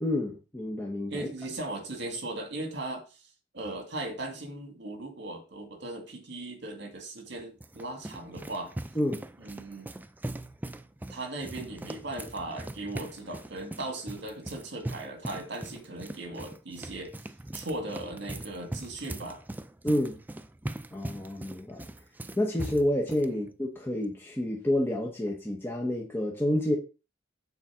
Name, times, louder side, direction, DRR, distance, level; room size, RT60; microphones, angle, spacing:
voice 1, 0.0-1.3 9.0-9.2 19.8-20.2 20.9-21.9 22.4-26.8, left 1 dB, 10° left, 1.0 m, -29 dB
voice 2, 1.1-3.2 3.5-8.7 9.4-9.9 11.1-17.2 17.5-19.4 23.3-23.4, right 2 dB, 65° right, 2.0 m, -38 dB
sound 1, 7.4-23.3, right 1 dB, 10° right, 0.3 m, -41 dB
7.0 x 4.2 x 6.2 m
head